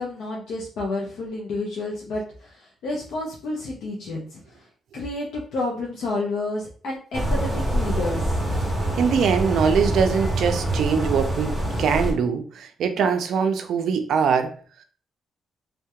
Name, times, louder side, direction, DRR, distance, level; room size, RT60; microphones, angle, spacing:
voice 1, 0.0-4.7 4.9-8.4, left 2 dB, 80° left, -3 dB, 0.5 m, -30 dB
sound 1, 7.1-12.1, right 1 dB, ahead, 0.6 m, -25 dB
voice 2, 8.9-14.5, right 6 dB, 70° right, 7 dB, 0.3 m, -22 dB
2.2 x 2.1 x 2.8 m, 0.42 s
cardioid pair, 140°, 0 cm